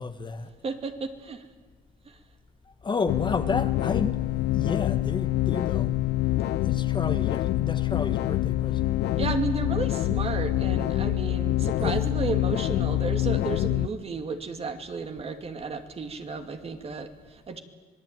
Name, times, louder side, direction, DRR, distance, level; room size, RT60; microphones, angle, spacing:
voice 1, 0.0-0.5 2.8-4.2 4.5-6.0 6.6-8.9 11.8-12.0, left 4 dB, 25° left, 9 dB, 1.5 m, -31 dB
voice 2, 0.6-1.5 2.1-2.2 9.2-17.6, right 4 dB, 35° right, 6 dB, 2.5 m, -33 dB
sound 1, 3.1-13.9, left 14 dB, 80° left, 0.7 m, -26 dB
26.0 x 19.5 x 9.2 m, 1.3 s
cardioid pair, 110°, 17 cm